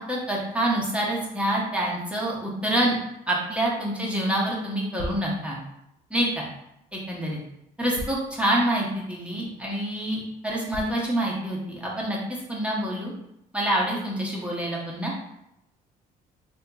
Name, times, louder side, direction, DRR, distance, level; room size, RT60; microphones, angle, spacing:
voice 1, 0.1-2.9 3.3-5.6 6.1-6.5 6.9-7.4 7.8-13.1 13.5-15.1, right 1 dB, 5° right, -4 dB, 0.8 m, -26 dB
sound 1, 5.0-5.3 6.9-7.0 7.9-8.3 8.9-9.0 9.6-9.7 10.7-11.0, left 1 dB, 70° left, 0.7 m, -36 dB
3.7 x 2.7 x 2.3 m, 0.82 s
cardioid pair, 110°, 17 cm